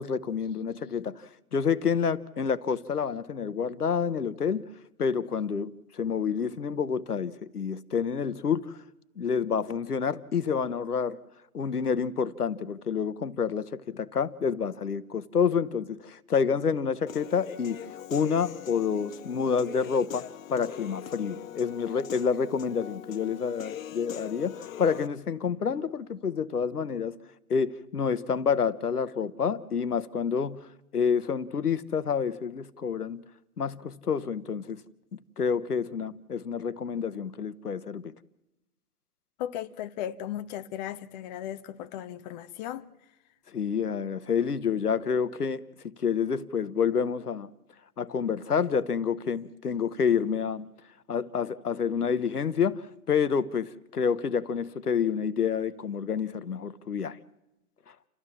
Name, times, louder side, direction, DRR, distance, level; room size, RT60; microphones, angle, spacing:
voice 1, 0.0-4.7 5.0-8.8 9.2-11.2 11.5-27.2 27.5-30.7 30.9-33.2 33.6-34.8 35.1-38.2 43.5-47.5 48.0-50.7 51.1-57.2 57.9-58.0, left 6 dB, 90° left, 1.0 m, -28 dB
Human voice / Piano, 17.1-25.1, left 10 dB, 65° left, 0.9 m, -42 dB
voice 2, 39.4-42.9, left 11 dB, 30° left, 0.8 m, -36 dB
29.0 x 14.0 x 7.3 m
figure-of-eight pair, 120°, 44 cm